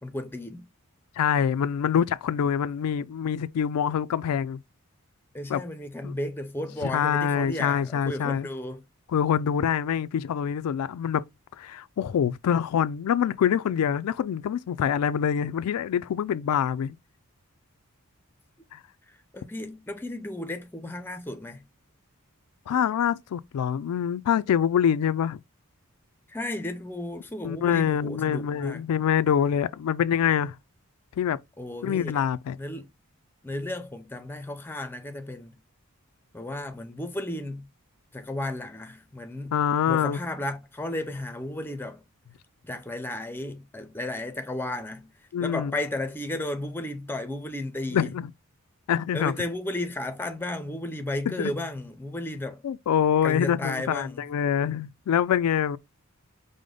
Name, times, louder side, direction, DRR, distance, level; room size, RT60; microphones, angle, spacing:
voice 1, 0.0-0.7 5.3-8.8 19.1-21.6 26.3-28.8 31.6-32.3 32.6-32.9 33.4-35.5 36.3-37.7 38.1-39.6 39.9-42.0 42.6-45.1 45.4-48.1 49.1-52.6 53.2-54.3, left 1 dB, 10° left, 0.4 m, -34 dB
voice 2, 1.2-4.6 5.5-5.6 6.0-6.1 6.8-8.5 9.1-11.2 11.6-17.0 18.7-18.8 22.7-25.4 27.4-30.6 31.2-31.4 31.8-32.6 39.5-40.2 45.3-45.7 47.9-48.3 48.9-49.3 51.3-51.5 52.6-55.8, left 8 dB, 85° left, 0.3 m, -25 dB
4.9 x 2.1 x 3.7 m
head